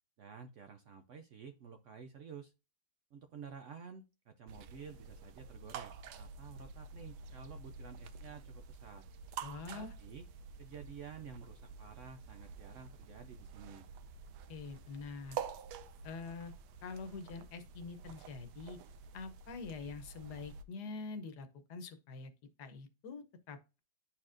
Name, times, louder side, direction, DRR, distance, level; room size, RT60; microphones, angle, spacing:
voice 1, 0.2-2.5 3.1-9.1 9.7-10.2 10.6-13.9, right 6 dB, 65° right, 0.7 m, -51 dB
sound 1, 4.5-20.6, right 6 dB, 90° right, 1.2 m, -49 dB
voice 2, 9.4-9.9 14.5-15.4 16.0-16.5 16.8-18.8 19.1-22.3 22.6-23.8, left 4 dB, 75° left, 1.4 m, -45 dB
11.0 x 4.3 x 2.5 m
omnidirectional pair, 1.8 m